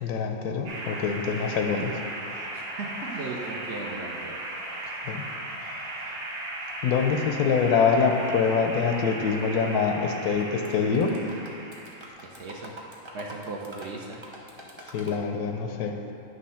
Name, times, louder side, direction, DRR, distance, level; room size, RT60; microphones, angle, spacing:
voice 1, 0.0-2.0 2.3-2.5 5.0-5.3 6.8-11.2 14.8-16.1, left 5 dB, 90° left, 4 dB, 1.1 m, -25 dB
sound 1, 0.7-12.1, right 1 dB, 80° right, 1.7 m, -36 dB
voice 2, 2.5-4.4 12.2-12.7 13.1-14.2, right 3 dB, 60° right, -1 dB, 0.8 m, -37 dB
sound 2, 10.1-10.7 10.9-15.2, right 1 dB, 25° right, 0.6 m, -45 dB
9.4 x 3.3 x 5.6 m, 2.6 s
omnidirectional pair, 1.6 m